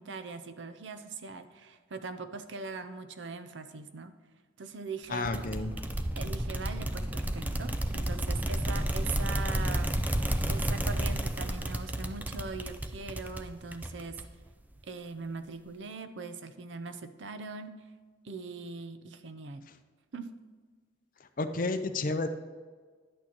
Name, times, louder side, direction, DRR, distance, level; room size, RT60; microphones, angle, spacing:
voice 1, 0.0-4.2 4.6-5.3 6.1-10.0 10.5-14.2 14.8-17.8 18.2-19.6 20.1-20.4, right 4 dB, 80° right, 10 dB, 0.6 m, -41 dB
voice 2, 5.1-5.7 21.4-22.3, left 3 dB, 45° left, 9 dB, 0.5 m, -31 dB
sound 1, 5.3-14.5, right 1 dB, 10° right, 0.4 m, -31 dB
11.0 x 8.4 x 3.0 m, 1.5 s
head